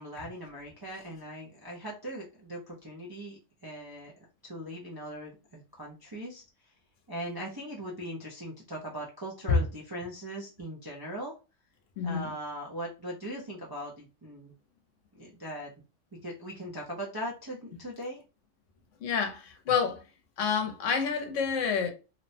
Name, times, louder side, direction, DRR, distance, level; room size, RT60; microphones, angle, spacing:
voice 1, 0.0-4.1 4.4-6.4 7.1-11.3 12.0-14.5 15.1-15.7 16.2-18.2, equal, 35° right, 0.3 m, -40 dB
voice 2, 12.0-12.3 19.0-20.0 20.4-21.9, left 6 dB, 75° left, 1.0 m, -28 dB
2.9 x 2.1 x 2.6 m
omnidirectional pair, 1.3 m